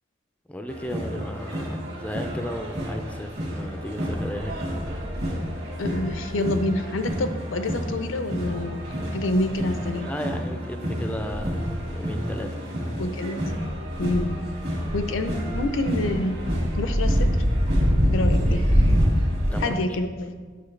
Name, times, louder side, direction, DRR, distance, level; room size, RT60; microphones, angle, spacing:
voice 1, 0.5-4.7 10.0-12.6 19.5-19.8, equal, 5° left, 5 dB, 0.3 m, -35 dB
sound 1, 0.7-19.7, equal, 60° right, 1.7 m, -26 dB
voice 2, 5.8-8.8 9.1-10.1 13.0-13.4 14.0-14.3 14.9-16.4 16.7-17.3 18.1-18.6 19.6-20.3, left 1 dB, 80° left, 9 dB, 0.5 m, -27 dB
8.4 x 4.8 x 3.2 m, 1.5 s
head